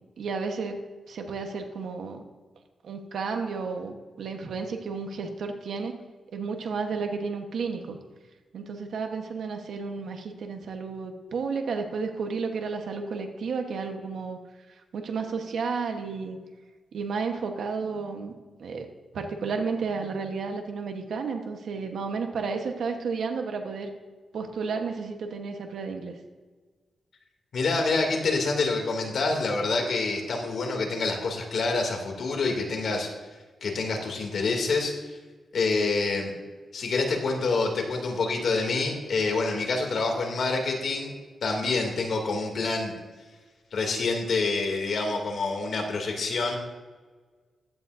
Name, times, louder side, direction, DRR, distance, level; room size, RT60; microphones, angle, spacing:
voice 1, 0.2-0.8 1.1-2.3 2.8-6.0 6.3-8.0 8.5-14.4 14.9-16.4 16.9-18.3 18.6-18.9 19.1-23.9 24.3-26.2, right 5 dB, 80° right, 4 dB, 1.2 m, -32 dB
voice 2, 27.5-33.1 33.6-35.1 35.5-36.3 36.7-41.1 41.4-42.9 43.7-46.6, left 3 dB, 65° left, 1 dB, 2.6 m, -27 dB
15.5 x 12.0 x 2.7 m, 1.4 s
wide cardioid pair, 110°, 0 cm